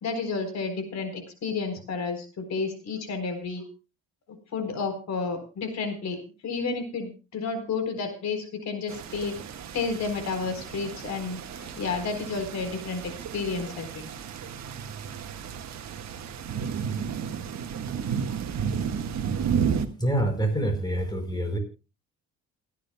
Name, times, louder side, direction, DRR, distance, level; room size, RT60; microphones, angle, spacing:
voice 1, 0.0-3.6 4.5-9.4 9.7-14.1, left 4 dB, 60° left, 8 dB, 4.2 m, -31 dB
sound 1, 8.9-19.9, right 7 dB, 65° right, 1.5 m, -32 dB
voice 2, 20.0-21.6, right 1 dB, 15° left, 6 dB, 5.0 m, -26 dB
29.0 x 10.5 x 2.2 m, 0.31 s
cardioid pair, 90°, 30 cm